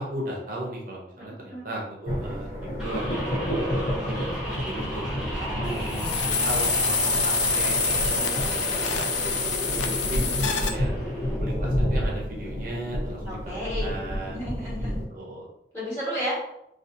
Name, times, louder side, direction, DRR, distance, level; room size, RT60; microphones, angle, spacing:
voice 1, 0.0-2.5 2.8-6.0 6.4-7.8 9.3-10.2 10.7-10.9 11.4-13.4 13.8-14.7 15.1-15.5, right 1 dB, 50° right, -2 dB, 0.5 m, -36 dB
voice 2, 1.2-1.6 5.6-6.2 8.2-9.1 10.9-11.1 13.3-14.0 14.3-14.9 15.7-16.4, equal, 15° left, -8 dB, 1.2 m, -34 dB
sound 1, 2.1-15.1, equal, 45° left, 0.7 m, -30 dB
sound 2, 2.8-11.4, equal, 5° right, 0.7 m, -35 dB
sound 3, 5.9-10.7, left 4 dB, 75° left, 0.3 m, -26 dB
2.6 x 2.3 x 2.5 m, 0.81 s
head